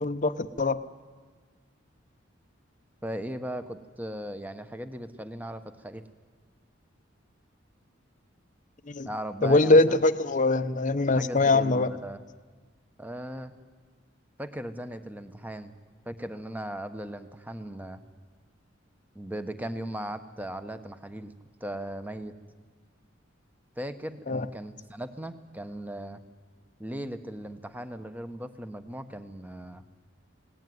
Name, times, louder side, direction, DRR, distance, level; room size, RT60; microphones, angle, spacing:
voice 1, 0.0-0.8 8.9-9.1 9.4-11.9 24.3-24.5, left 2 dB, 40° left, 10 dB, 0.8 m, -22 dB
voice 2, 3.0-6.0 9.0-10.0 11.2-12.2 13.0-13.5 14.4-15.7 16.0-18.0 19.1-21.3 21.6-22.3 23.8-26.2 26.8-29.8, right 1 dB, 10° right, 9 dB, 1.2 m, -38 dB
28.0 x 18.5 x 9.5 m, 1.5 s
head